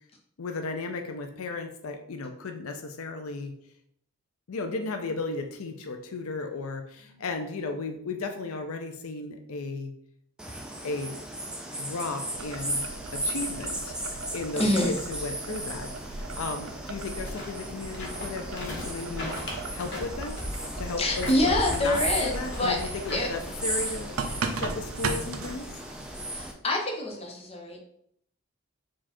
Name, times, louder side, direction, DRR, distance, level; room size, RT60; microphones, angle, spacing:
voice 1, 0.4-3.5 4.5-9.9 10.8-11.2 11.8-12.9 13.1-14.0 14.3-19.3 19.7-20.4 20.8-25.7, left 3 dB, 85° left, 5 dB, 0.5 m, -35 dB
sound 1, 10.4-26.5, right 1 dB, 5° right, 0.4 m, -35 dB
Boiling, 12.3-25.6, right 3 dB, 75° right, 0.5 m, -38 dB
voice 2, 14.6-14.9 21.0-22.8 23.1-23.3 26.3-27.8, left 1 dB, 25° left, 0 dB, 0.8 m, -26 dB
sound 2, 17.3-24.4, left 1 dB, 50° left, 1.1 m, -40 dB
4.7 x 2.4 x 4.2 m, 0.69 s
head